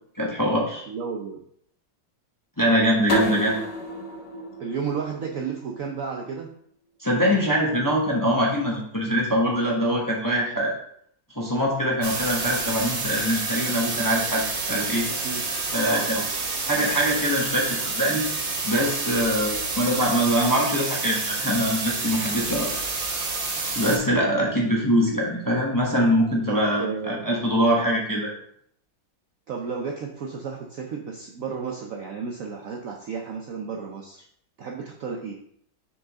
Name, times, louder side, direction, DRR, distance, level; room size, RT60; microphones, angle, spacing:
voice 1, 0.2-0.9 2.6-3.6 7.0-10.7 11.3-15.1 15.7-16.2 16.7-18.2 18.6-22.7 23.7-28.3, equal, 15° left, -3 dB, 1.0 m, -23 dB
voice 2, 0.9-1.4 3.0-3.4 4.6-6.5 15.2-15.4 15.8-16.3 16.7-16.9 20.4-20.6 26.5-27.4 29.5-34.3 34.6-35.3, right 5 dB, 65° right, 1 dB, 0.9 m, -33 dB
sound 1, 3.1-5.9, equal, 60° left, 1.7 m, -30 dB
sound 2, 12.0-24.0, right 3 dB, 85° right, 2.1 m, -29 dB
6.4 x 4.8 x 3.6 m, 0.66 s
omnidirectional pair, 2.0 m